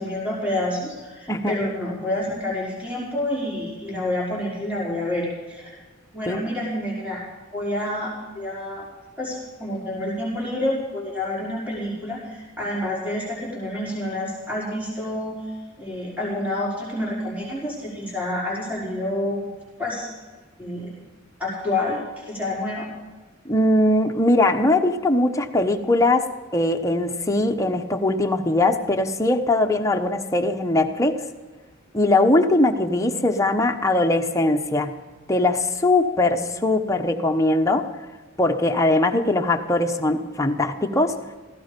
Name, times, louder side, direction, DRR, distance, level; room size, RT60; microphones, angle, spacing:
voice 1, 0.0-5.8 6.1-7.2 7.5-8.8 9.2-15.4 15.8-19.5 19.8-20.1 20.6-20.9 21.4-22.9, left 1 dB, 10° right, -6 dB, 5.1 m, -28 dB
voice 2, 23.4-31.2 31.9-34.9 35.3-37.9 38.4-41.2, left 2 dB, 15° left, 5 dB, 1.0 m, -21 dB
17.5 x 16.0 x 5.3 m, 1.3 s
head